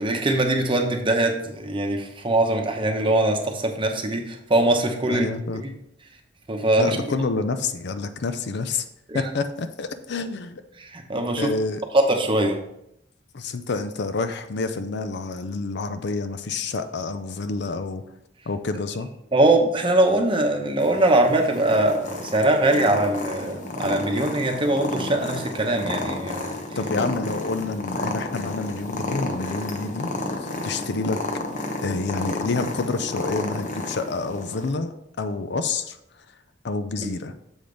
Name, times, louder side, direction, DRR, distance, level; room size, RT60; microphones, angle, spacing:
voice 1, 0.0-5.7 6.5-7.0 9.1-9.2 10.8-11.5 11.9-12.6 19.3-26.6 37.0-37.1, right 1 dB, 25° right, 4 dB, 0.9 m, -22 dB
voice 2, 5.1-5.6 6.8-8.9 9.1-10.6 11.4-11.8 13.3-18.0 18.5-19.1 26.8-30.4 30.6-31.2 31.8-36.0 36.6-37.3, left 3 dB, 65° left, 10 dB, 0.5 m, -28 dB
Purr, 20.8-34.7, left 2 dB, 40° left, 0.8 m, -32 dB
7.1 x 5.1 x 3.9 m, 0.79 s
head